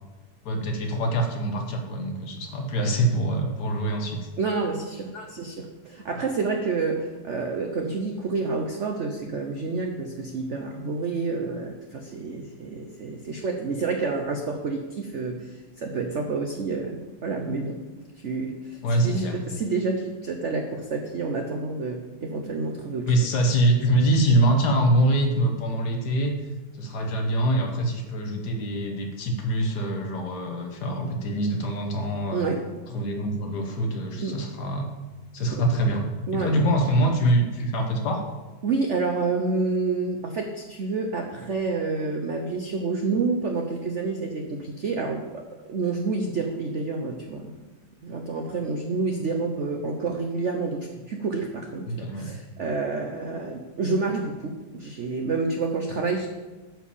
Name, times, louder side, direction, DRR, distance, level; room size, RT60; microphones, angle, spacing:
voice 1, 0.4-4.3 5.1-5.3 18.8-19.4 23.1-26.4 26.8-32.4 32.9-34.9 35.3-38.3 51.9-52.4, right 1 dB, 60° left, 3 dB, 1.5 m, -24 dB
voice 2, 4.4-17.8 18.2-23.1 32.3-32.6 34.2-34.4 35.5-35.6 36.3-36.5 38.6-47.5 48.0-56.3, right 4 dB, 65° right, 4 dB, 0.7 m, -29 dB
10.0 x 4.6 x 7.0 m, 1.2 s
omnidirectional pair, 2.2 m